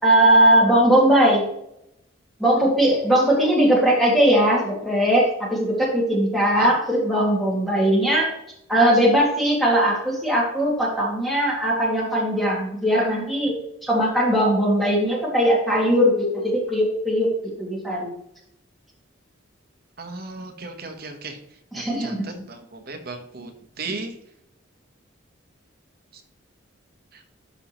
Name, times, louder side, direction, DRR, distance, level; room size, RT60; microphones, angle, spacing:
voice 1, 0.0-1.4 2.4-8.3 8.7-13.5 13.8-17.3 17.6-18.1 21.7-22.3, right 1 dB, ahead, -4 dB, 2.1 m, -19 dB
voice 2, 20.0-21.4 21.7-23.5 23.8-24.1 27.1-27.2, right 3 dB, 45° right, 6 dB, 1.0 m, -36 dB
12.5 x 5.3 x 3.0 m, 0.78 s
head